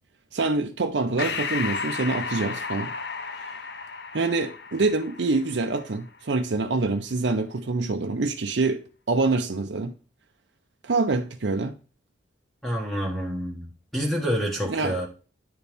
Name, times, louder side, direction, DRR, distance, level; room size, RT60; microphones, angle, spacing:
voice 1, 0.3-2.9 4.1-9.9 10.8-11.7 14.7-14.9, right 3 dB, 75° right, 0.6 m, -25 dB
Breathing, 1.2-6.1, left 5 dB, 60° left, 0.7 m, -33 dB
voice 2, 12.6-13.7 13.9-15.1, equal, ahead, 1.3 m, -27 dB
9.3 x 4.3 x 3.4 m
head